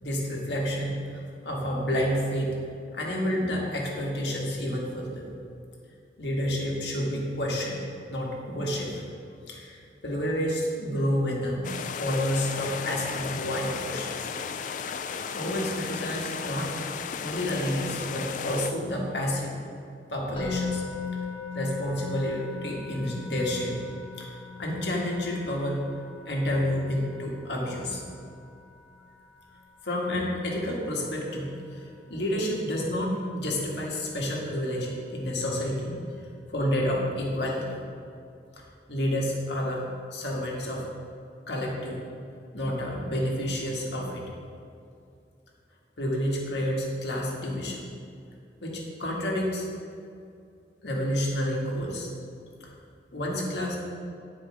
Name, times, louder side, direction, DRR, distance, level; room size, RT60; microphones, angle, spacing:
voice 1, 0.0-2.6 2.9-5.3 6.2-7.8 8.1-9.0 9.4-14.3 15.3-16.8 17.2-19.6 20.1-20.8 21.5-23.8 24.2-25.8 26.2-28.0 29.8-36.0 36.5-37.8 38.6-38.7 38.9-39.8 40.1-40.9 41.5-42.0 42.5-44.2 46.0-47.9 48.6-49.6 50.8-52.1 52.6-52.7 53.1-53.8, equal, 80° left, -2 dB, 1.6 m, -29 dB
sound 1, 11.6-18.7, left 6 dB, 45° left, 0.3 m, -35 dB
Musical instrument, 20.4-31.5, left 5 dB, 30° left, 1.2 m, -40 dB
9.3 x 4.8 x 4.9 m, 2.5 s
head